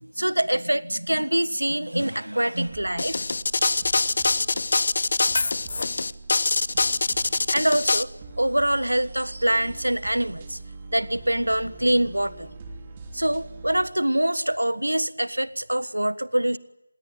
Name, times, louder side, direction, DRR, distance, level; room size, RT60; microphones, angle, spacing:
voice 1, 0.0-3.3 7.5-8.1 8.4-10.6 10.9-12.5 13.1-16.6, right 1 dB, 80° right, 16 dB, 1.4 m, -24 dB
sound 1, 2.6-13.9, right 3 dB, 20° right, 2.6 m, -42 dB
sound 2, 3.0-8.0, left 3 dB, 45° left, 0.9 m, -24 dB
27.0 x 21.0 x 9.1 m, 0.88 s
figure-of-eight pair, 165°, 0 cm